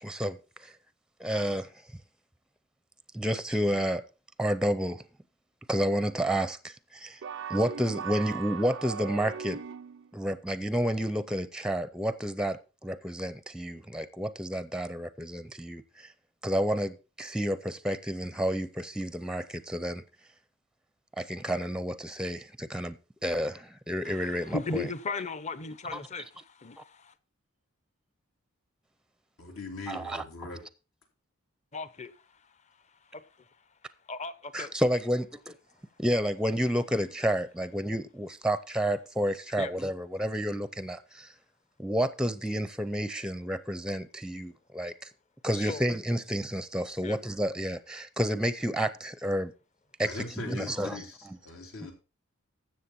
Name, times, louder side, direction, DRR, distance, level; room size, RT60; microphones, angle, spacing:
voice 1, 0.0-0.7 1.2-1.7 3.1-4.1 4.4-5.0 5.7-7.2 7.5-9.6 10.1-16.1 16.4-20.0 21.2-23.0 23.2-24.9 25.9-26.0 29.9-30.2 34.5-35.6 36.0-41.3 41.8-45.1 45.4-49.5 50.0-51.0, equal, 5° right, 0.5 m, -30 dB
sound 1, 7.2-10.1, right 7 dB, 60° right, 0.4 m, -38 dB
voice 2, 24.0-27.1 31.7-32.2 33.1-33.2 34.1-34.7 39.6-39.7 45.5-45.8 47.0-47.2, left 3 dB, 35° left, 0.7 m, -37 dB
voice 3, 29.4-30.6 50.0-51.9, left 2 dB, 85° left, 3.6 m, -40 dB
13.0 x 7.7 x 4.2 m
head